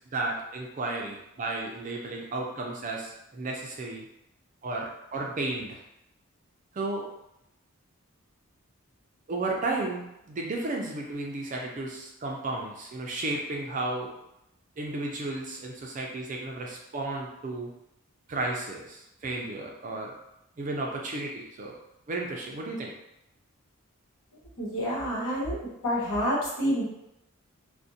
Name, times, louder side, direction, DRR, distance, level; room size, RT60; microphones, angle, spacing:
voice 1, 0.1-4.1 4.6-5.8 6.7-7.1 9.3-14.1 14.8-17.7 18.3-20.1 20.6-21.7 22.1-22.9, right 2 dB, 35° right, 0 dB, 0.3 m, -33 dB
voice 2, 24.6-25.6 25.8-26.8, equal, 75° left, -7 dB, 1.1 m, -28 dB
2.5 x 2.1 x 2.6 m, 0.84 s
head